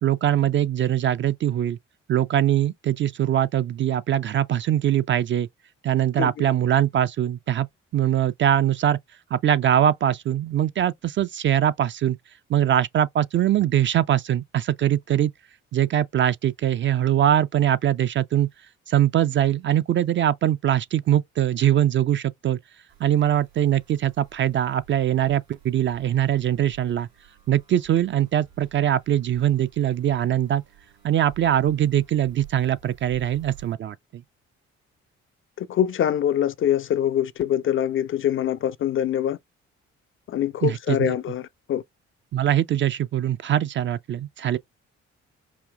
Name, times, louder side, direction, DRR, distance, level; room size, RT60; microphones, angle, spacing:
voice 1, 0.0-1.8 2.1-5.5 5.8-7.7 7.9-9.0 9.3-12.2 12.5-15.3 15.7-18.5 18.9-22.6 23.0-27.1 27.5-30.6 31.0-34.0 40.6-41.2 42.3-44.6, right 11 dB, 35° right, 0.4 m, -22 dB
sound 1, 22.9-33.7, right 11 dB, 70° right, 3.1 m, -51 dB
voice 2, 35.6-39.4 40.3-41.8, left 10 dB, 35° left, 0.4 m, -24 dB
5.0 x 2.7 x 2.2 m
figure-of-eight pair, 40°, 36 cm